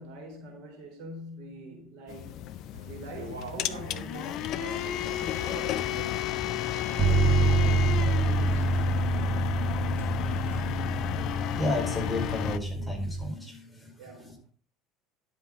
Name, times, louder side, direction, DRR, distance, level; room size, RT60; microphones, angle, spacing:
voice 1, 0.0-2.5 2.8-9.4 14.0-14.5, right 2 dB, 55° right, 3.6 m, -45 dB
sound 1, 2.1-12.6, left 12 dB, 50° left, 0.7 m, -32 dB
sound 2, 2.7-10.8, right 2 dB, 70° right, 3.0 m, -48 dB
Bass guitar, 7.0-13.2, right 3 dB, 40° right, 2.1 m, -27 dB
voice 2, 11.2-13.9 14.2-14.3, left 2 dB, 10° left, 4.5 m, -33 dB
11.0 x 8.1 x 3.7 m
figure-of-eight pair, 65°, 0 cm